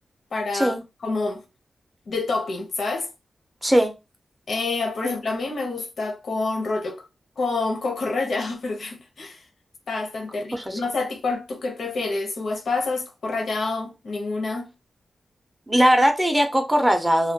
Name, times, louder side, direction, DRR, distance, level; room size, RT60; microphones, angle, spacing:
voice 1, 0.3-0.8 1.0-1.4 2.1-3.1 4.5-7.0 7.4-9.4 9.9-14.7, left 3 dB, 75° left, 0.6 m, -27 dB
voice 2, 3.6-4.0 10.5-10.8 15.7-17.3, equal, 10° right, 0.4 m, -20 dB
2.2 x 2.1 x 2.7 m
wide cardioid pair, 105°, 0 cm